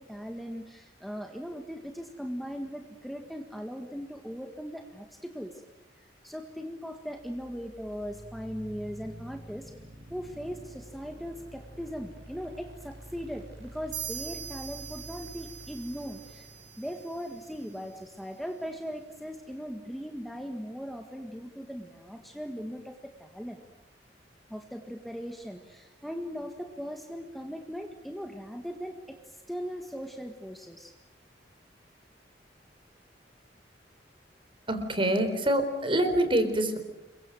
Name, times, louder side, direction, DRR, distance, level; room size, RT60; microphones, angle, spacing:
voice 1, 0.0-5.6 6.0-9.8 10.1-23.6 24.5-31.0, equal, ahead, 4 dB, 1.7 m, -39 dB
sound 1, 7.1-19.1, right 1 dB, 70° right, 6.5 m, -49 dB
sound 2, 13.9-17.5, right 8 dB, 45° right, 5.8 m, -42 dB
voice 2, 34.7-36.8, right 1 dB, 30° right, 9 dB, 4.1 m, -25 dB
29.0 x 23.5 x 7.8 m, 0.94 s
head